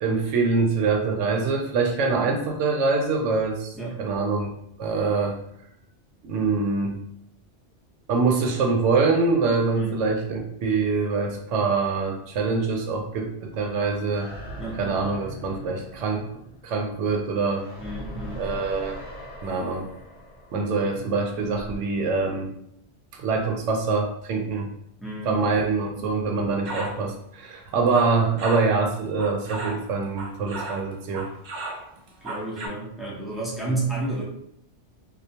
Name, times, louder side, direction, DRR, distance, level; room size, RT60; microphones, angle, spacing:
voice 1, 0.0-4.5 4.8-5.4 6.2-7.0 8.1-14.3 14.8-16.3 16.6-17.7 18.3-19.0 19.4-19.9 20.5-22.5 23.2-24.7 25.3-31.3, right 4 dB, 90° right, 2 dB, 0.9 m, -24 dB
sound 1, 14.1-21.8, equal, 25° right, 1.0 m, -41 dB
voice 2, 17.8-18.5 25.0-25.6 32.2-34.2, right 2 dB, ahead, -6 dB, 0.4 m, -31 dB
sound 2, 26.6-27.0 27.7-28.7 29.2-30.9 31.1-32.7, right 2 dB, 55° right, 0.5 m, -35 dB
2.4 x 2.2 x 2.7 m, 0.73 s
omnidirectional pair, 1.2 m